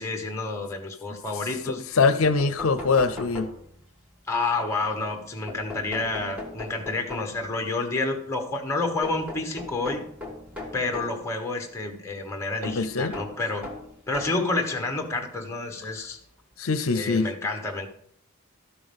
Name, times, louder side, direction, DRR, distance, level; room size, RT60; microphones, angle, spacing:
voice 1, 0.0-1.9 4.3-10.0 10.7-13.7 14.1-16.2 16.9-17.9, left 3 dB, 15° left, 1.2 m, -29 dB
voice 2, 1.9-3.5 12.6-13.1 16.6-17.3, left 4 dB, 70° left, 0.6 m, -23 dB
sound 1, 1.9-2.0 2.2-4.0 5.5-7.5 9.0-11.2 12.6-14.5 15.4-15.5 16.8-16.9 17.2-17.3, left 2 dB, 5° right, 1.5 m, -39 dB
12.5 x 5.9 x 5.3 m
head